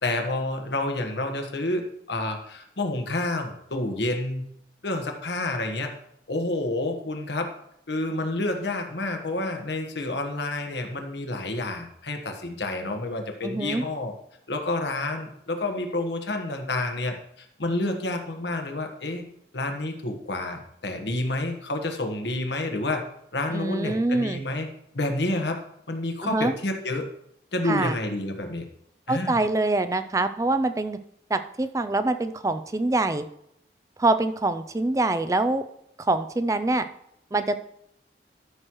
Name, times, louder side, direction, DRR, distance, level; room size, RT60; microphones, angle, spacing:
voice 1, 0.0-4.5 4.8-5.9 6.3-7.5 7.9-14.1 14.5-19.2 19.5-23.0 23.3-24.7 24.9-25.6 25.9-27.1 27.5-28.6 29.1-29.4, left 2 dB, 85° left, 4 dB, 1.3 m, -29 dB
voice 2, 13.4-13.8 23.5-24.4 26.2-26.5 27.7-28.0 29.1-31.0 31.3-33.3 34.0-35.6 36.0-36.8 37.3-37.6, right 2 dB, 20° right, 11 dB, 0.3 m, -25 dB
13.0 x 6.3 x 3.0 m, 0.74 s
head